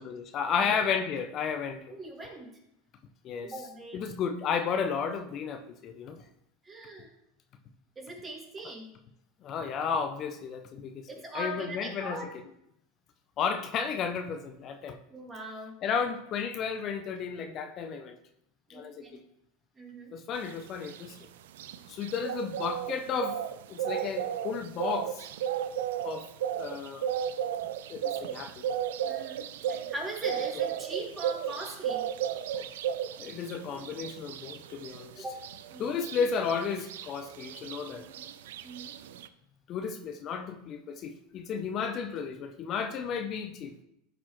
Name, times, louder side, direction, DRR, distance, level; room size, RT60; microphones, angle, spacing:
voice 1, 0.0-1.9 3.2-3.5 3.9-6.2 9.4-11.1 11.3-12.2 13.4-15.0 15.8-18.2 18.7-19.2 20.1-21.2 21.9-23.4 23.7-25.3 26.0-26.3 26.5-27.1 27.9-28.7 32.5-32.6 33.2-35.2 35.8-38.1 39.7-43.7, left 6 dB, 45° left, 7 dB, 0.6 m, -33 dB
voice 2, 1.9-2.6 3.4-4.1 6.6-7.1 8.0-8.9 11.1-12.3 15.1-15.8 18.7-19.2 19.8-20.1 29.0-32.1 35.2-35.4 35.7-35.9 38.0-38.4 38.6-39.0, right 1 dB, 25° right, 0 dB, 2.0 m, -41 dB
sound 1, 20.4-39.3, right 9 dB, 75° right, 0.4 m, -35 dB
11.0 x 4.2 x 3.1 m, 0.79 s
hypercardioid pair, 95°, 0 cm